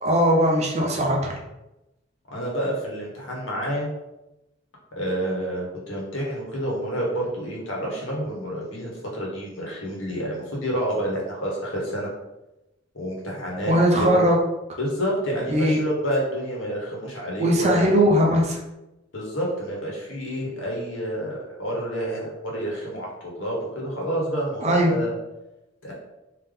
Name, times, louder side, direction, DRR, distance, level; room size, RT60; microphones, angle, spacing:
voice 1, 0.0-1.4 13.7-14.4 15.5-15.8 17.4-18.6 24.6-24.9, equal, 35° right, -1 dB, 0.7 m, -19 dB
voice 2, 2.3-3.9 5.0-12.1 12.9-13.7 14.1-14.2 14.8-17.8 19.1-25.1 25.8-25.9, equal, 75° left, -3 dB, 1.3 m, -29 dB
3.7 x 2.8 x 3.5 m, 0.95 s
head